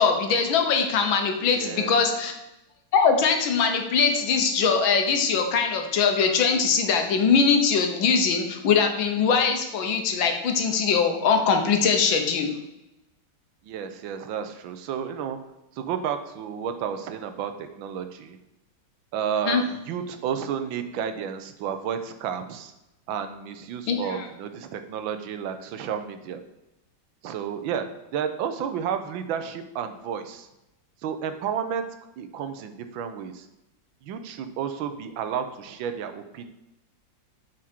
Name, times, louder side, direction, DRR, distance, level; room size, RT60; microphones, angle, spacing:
voice 1, 0.0-2.3 2.9-12.5 19.5-19.6 23.9-24.2, left 5 dB, 85° left, 5 dB, 1.8 m, -22 dB
voice 2, 1.5-2.0 13.6-15.4 15.7-18.4 19.1-22.7 23.1-26.4 27.2-30.5 31.0-31.9 32.2-33.5 34.0-36.5, right 8 dB, 90° right, 9 dB, 1.5 m, -31 dB
7.6 x 4.9 x 4.4 m, 0.91 s
omnidirectional pair, 2.1 m